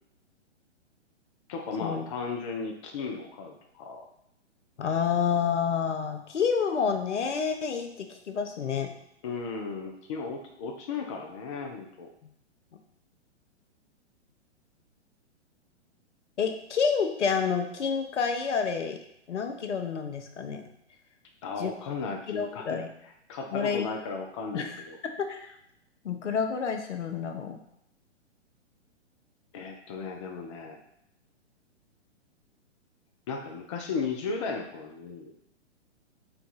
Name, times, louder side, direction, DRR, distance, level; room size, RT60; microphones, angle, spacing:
voice 1, 1.5-4.0 9.2-12.1 21.4-22.8 23.3-25.0 29.5-30.8 33.3-35.3, left 4 dB, 30° left, 2 dB, 0.4 m, -35 dB
voice 2, 4.8-8.9 16.4-19.0 19.3-20.6 21.6-21.7 22.3-22.9 23.5-23.9 24.5-25.5 26.0-27.6, left 6 dB, 75° left, 6 dB, 0.7 m, -29 dB
4.5 x 2.3 x 4.0 m, 0.76 s
figure-of-eight pair, 120°, 36 cm